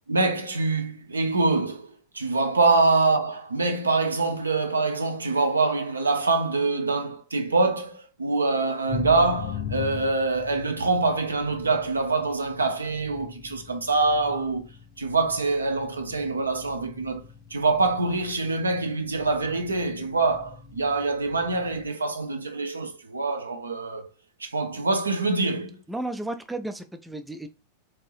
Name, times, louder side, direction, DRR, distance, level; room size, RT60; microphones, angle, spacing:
voice 1, 0.0-14.7 15.0-17.2 17.5-24.1 24.4-25.8, right 3 dB, 75° right, 0.5 m, -25 dB
sound 1, 8.9-21.9, left 6 dB, 35° left, 0.6 m, -41 dB
voice 2, 25.9-27.5, right 2 dB, 5° right, 0.3 m, -33 dB
2.8 x 2.5 x 3.1 m
figure-of-eight pair, 90°, 0 cm